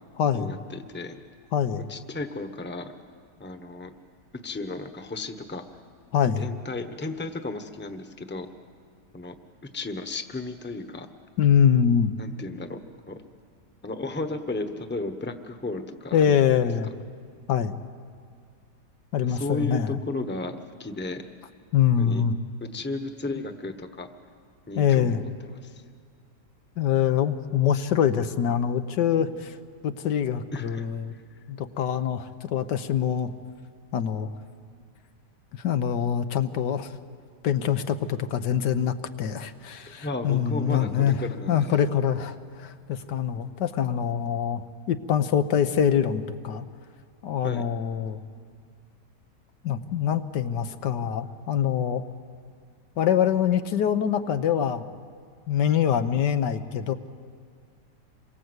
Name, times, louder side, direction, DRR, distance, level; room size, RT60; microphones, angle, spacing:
voice 1, 0.3-1.2 1.9-2.9 3.4-3.9 4.4-5.6 6.4-8.5 9.1-9.4 9.7-11.1 12.2-12.8 13.1-13.2 13.8-16.6 19.2-21.3 22.0-22.2 22.6-24.1 24.7-25.8 30.5-30.9 40.0-41.7 47.4-47.6, left 2 dB, 5° left, 8 dB, 1.0 m, -34 dB
voice 2, 1.5-1.9 6.1-6.5 11.4-12.1 16.1-16.9 17.5-17.8 19.1-20.0 21.7-22.4 24.7-25.2 26.8-29.6 29.8-31.1 31.5-33.3 33.9-34.3 35.6-36.9 37.4-41.2 41.5-46.7 47.2-48.2 49.6-52.0 53.0-54.9 55.5-56.9, left 8 dB, 80° left, 10 dB, 1.6 m, -24 dB
28.0 x 22.5 x 8.1 m, 2.1 s
omnidirectional pair, 1.8 m